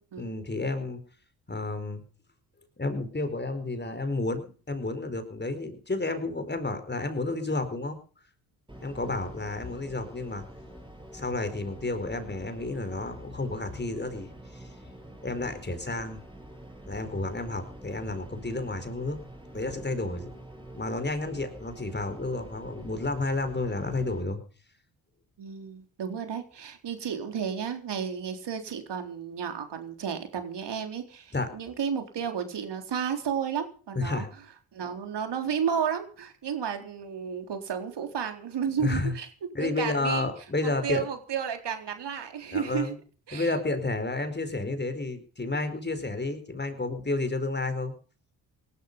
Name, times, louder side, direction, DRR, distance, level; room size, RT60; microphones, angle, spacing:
voice 1, 0.2-1.0 1.5-2.0 2.8-8.0 8.8-10.4 11.1-14.3 14.5-14.7 15.2-16.2 16.9-19.2 19.5-20.4 20.7-24.4 31.3-31.5 33.9-34.3 38.8-39.1 39.5-41.0 42.5-42.9 43.3-47.9, left 2 dB, 20° left, 9 dB, 4.7 m, -31 dB
sound 1, 8.7-24.2, right 1 dB, 10° right, 6.3 m, -47 dB
voice 2, 25.4-34.2 34.7-39.3 39.6-40.3 40.6-42.9 43.3-43.5, right 7 dB, 60° right, 6 dB, 4.0 m, -32 dB
18.0 x 12.5 x 5.5 m, 0.41 s
supercardioid pair, 65°, 46 cm